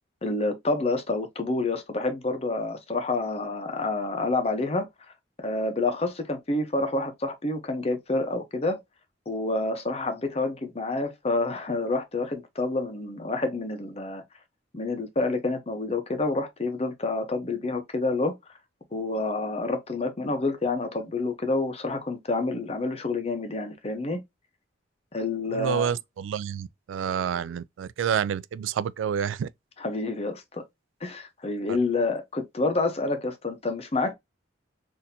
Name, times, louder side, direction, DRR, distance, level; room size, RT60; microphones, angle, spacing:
voice 1, 0.2-4.9 5.4-8.8 9.3-14.2 14.7-18.3 18.9-24.2 25.1-26.0 29.8-30.6 31.0-34.1, left 2 dB, 30° left, 0.7 m, -28 dB
voice 2, 25.5-29.5 31.7-31.8, right 8 dB, 90° right, 0.3 m, -29 dB
4.1 x 2.6 x 2.6 m
head